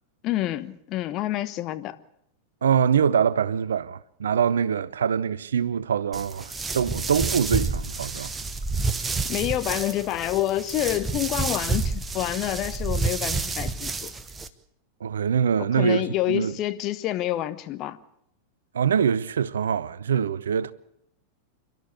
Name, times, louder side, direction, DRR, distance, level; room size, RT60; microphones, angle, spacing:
voice 1, 0.2-2.0 9.3-14.1 15.8-18.0, left 14 dB, 35° left, 1.2 m, -28 dB
voice 2, 2.6-8.3 15.0-16.6 18.7-20.7, right 7 dB, 65° right, 0.7 m, -24 dB
sound 1, 6.1-14.5, right 3 dB, 15° right, 1.2 m, -29 dB
28.0 x 12.5 x 8.3 m
figure-of-eight pair, 90°, 0 cm